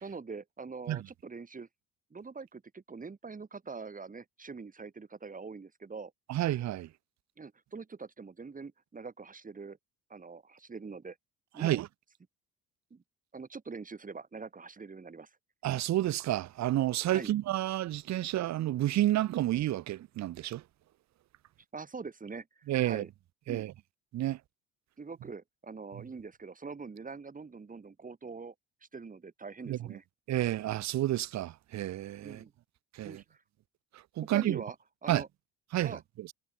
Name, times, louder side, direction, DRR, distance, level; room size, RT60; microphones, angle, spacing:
voice 1, 0.0-1.7 2.1-6.1 7.4-9.8 10.1-11.2 11.5-11.8 12.9-13.0 13.3-15.3 17.1-17.3 21.7-23.1 23.5-23.7 25.0-28.5 28.9-30.0 32.2-32.5 33.0-33.4 34.2-34.8 35.0-35.3 35.8-36.0, right 4 dB, 20° right, 1.5 m, -44 dB
voice 2, 6.3-6.9 11.6-11.9 15.6-20.6 22.7-23.0 23.5-23.7 24.1-24.4 29.7-29.8 30.3-32.4 33.0-33.2 34.2-34.6 35.1-35.2 35.7-36.3, right 14 dB, 45° right, 0.6 m, -30 dB
supercardioid pair, 70°, 39 cm